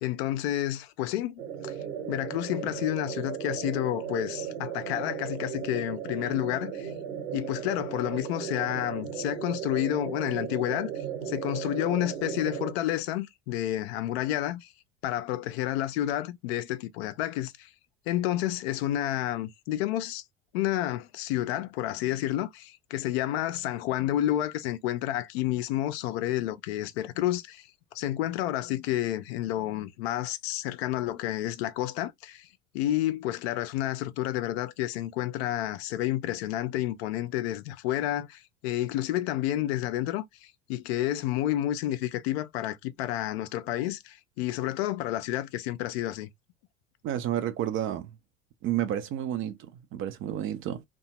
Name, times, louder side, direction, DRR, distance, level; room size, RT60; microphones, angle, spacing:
voice 1, 0.0-1.7 2.1-6.9 7.3-14.7 15.0-17.7 18.1-20.2 20.5-27.7 27.9-32.5 32.7-46.3, left 13 dB, 55° left, 0.5 m, -30 dB
sound 1, 1.4-12.7, right 8 dB, 65° right, 1.1 m, -36 dB
voice 2, 47.0-48.1 48.6-50.8, right 11 dB, 35° right, 0.5 m, -31 dB
2.7 x 2.3 x 2.8 m
figure-of-eight pair, 70°, 38 cm